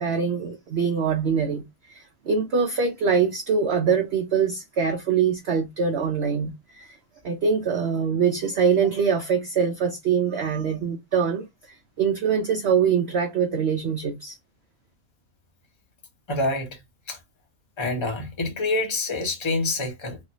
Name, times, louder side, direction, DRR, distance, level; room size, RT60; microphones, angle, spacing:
voice 1, 0.0-1.6 1.9-6.9 7.2-11.4 12.0-14.4, right 6 dB, 60° right, 0.7 m, -23 dB
voice 2, 16.3-16.8 17.1-17.2 17.8-20.2, left 2 dB, 25° left, 0.8 m, -26 dB
3.1 x 2.5 x 2.6 m
omnidirectional pair, 1.5 m